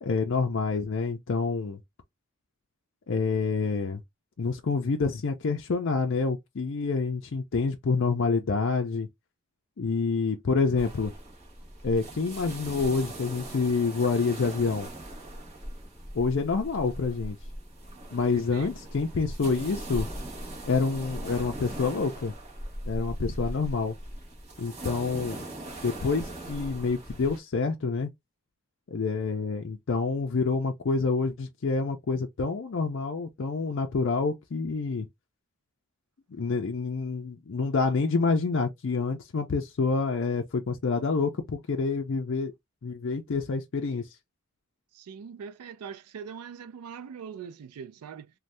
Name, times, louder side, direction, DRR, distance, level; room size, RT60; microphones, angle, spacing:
voice 1, 0.0-1.8 3.1-4.0 4.4-9.1 9.8-11.1 11.8-14.9 16.1-17.4 18.1-20.1 20.7-22.3 22.9-23.9 24.6-25.4 25.8-28.1 28.9-35.1 36.3-42.5 42.8-44.1, left 4 dB, 55° left, 0.4 m, -27 dB
sound 1, 10.8-27.4, right 1 dB, 30° right, 1.0 m, -39 dB
voice 2, 18.3-18.7 44.9-48.3, right 7 dB, 85° right, 0.4 m, -42 dB
2.6 x 2.2 x 3.2 m
head